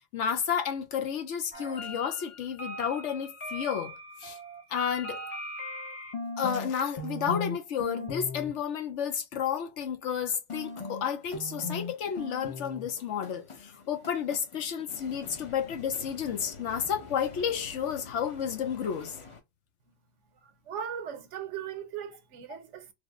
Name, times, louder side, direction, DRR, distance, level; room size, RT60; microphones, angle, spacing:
voice 1, 0.1-4.4 4.7-5.2 6.4-19.2, left 8 dB, 75° left, 1.0 m, -31 dB
sound 1, 1.5-6.7 7.0-7.6 7.8-8.5 10.5-19.4, left 2 dB, 30° left, 0.7 m, -40 dB
voice 2, 20.7-22.9, right 8 dB, 80° right, 1.0 m, -38 dB
3.3 x 2.0 x 3.6 m
omnidirectional pair, 1.2 m